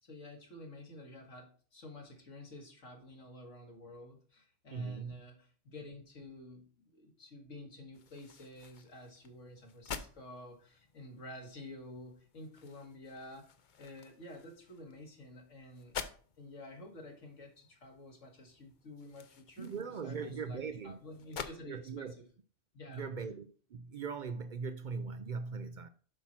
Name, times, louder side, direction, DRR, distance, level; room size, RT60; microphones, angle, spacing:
voice 1, 0.0-13.5 13.8-16.0 16.4-22.3 22.7-23.3, left 1 dB, 80° left, 2.3 m, -50 dB
voice 2, 4.7-5.2 19.6-20.9 21.7-22.1 22.9-25.9, right 5 dB, 60° right, 0.5 m, -40 dB
sound 1, 7.9-21.6, left 6 dB, 50° left, 0.7 m, -50 dB
8.0 x 6.0 x 4.3 m
omnidirectional pair, 1.3 m